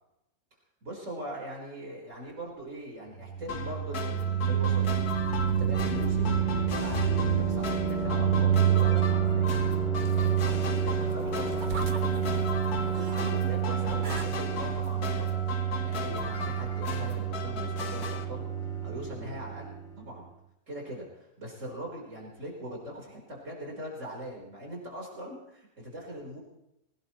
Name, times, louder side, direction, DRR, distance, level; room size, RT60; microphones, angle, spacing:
voice 1, 0.8-5.0 5.5-9.4 10.0-12.3 12.9-15.4 15.8-18.5 18.8-20.3 20.7-26.4, equal, 55° right, -3 dB, 4.7 m, -41 dB
sound 1, 3.1-19.9, right 8 dB, 40° left, 2.6 m, -28 dB
sound 2, 3.5-18.2, left 6 dB, 85° left, 2.0 m, -38 dB
sound 3, 10.0-13.3 13.7-14.9 15.6-15.7, right 4 dB, 35° right, 1.2 m, -43 dB
22.0 x 18.5 x 3.1 m, 0.85 s
omnidirectional pair, 1.6 m